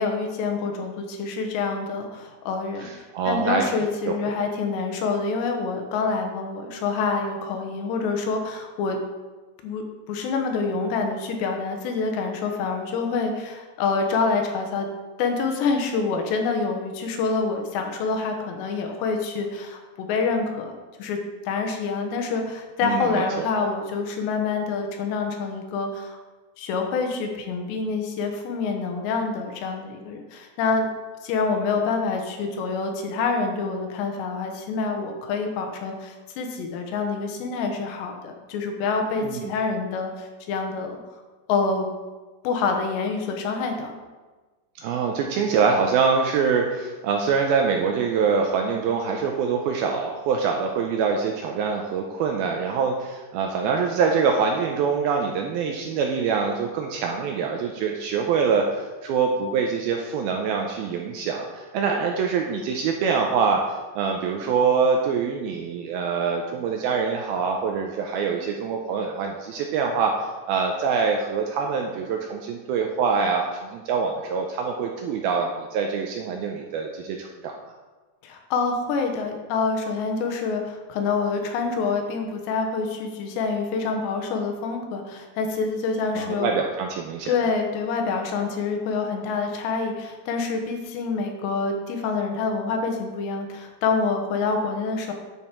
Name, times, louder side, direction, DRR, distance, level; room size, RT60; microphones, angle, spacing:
voice 1, 0.0-2.9 3.2-9.0 9.6-14.9 15.2-20.7 21.0-21.2 21.5-26.2 26.6-30.9 31.2-41.0 41.5-41.9 42.4-43.9 78.2-86.5 87.3-95.1, left 4 dB, 80° left, 4 dB, 3.2 m, -26 dB
voice 2, 2.8-4.2 22.8-23.5 39.2-39.5 44.8-63.6 64.0-77.5 86.1-87.3, right 5 dB, 85° right, 2 dB, 2.2 m, -24 dB
10.0 x 7.2 x 4.4 m, 1.3 s
omnidirectional pair, 5.0 m